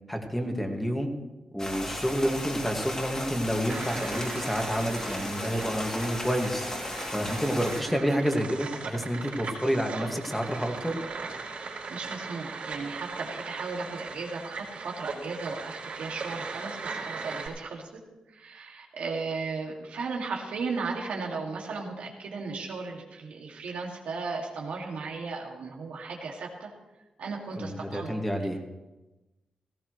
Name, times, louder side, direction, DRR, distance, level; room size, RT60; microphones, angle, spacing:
voice 1, 0.1-1.1 1.5-6.7 7.1-11.0 27.6-28.6, equal, 5° left, 2 dB, 2.1 m, -29 dB
sound 1, 1.6-7.8, left 1 dB, 30° left, 3.0 m, -35 dB
sound 2, 3.7-17.5, right 4 dB, 70° right, 4.3 m, -39 dB
voice 2, 11.6-17.9 18.3-26.7 27.2-28.1, right 4 dB, 90° right, -1 dB, 2.3 m, -36 dB
17.5 x 15.5 x 3.2 m, 1.1 s
cardioid pair, 85°, 2 cm